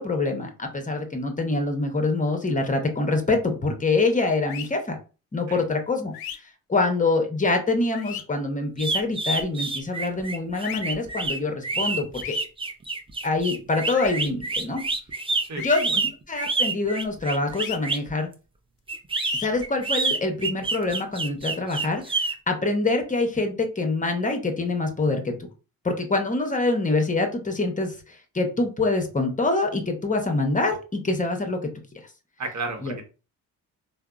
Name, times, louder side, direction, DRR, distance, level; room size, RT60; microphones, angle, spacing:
voice 1, 0.0-5.0 5.3-12.4 13.2-14.8 15.6-18.3 19.4-25.3 25.8-31.7 32.8-33.0, left 3 dB, 20° left, 5 dB, 0.7 m, -25 dB
sound 1, 4.5-4.7 6.1-6.4 7.9-8.2 10.6-10.8 12.2-12.5 13.9-14.1 15.6-15.8 17.6-17.8 19.2-19.5, left 10 dB, 65° left, 0.5 m, -34 dB
sound 2, 8.8-18.1 18.9-22.3, right 3 dB, 15° right, 0.4 m, -27 dB
voice 2, 32.4-33.0, right 3 dB, 45° right, 4 dB, 0.9 m, -32 dB
3.3 x 2.0 x 2.3 m, 0.33 s
supercardioid pair, 65°, 39 cm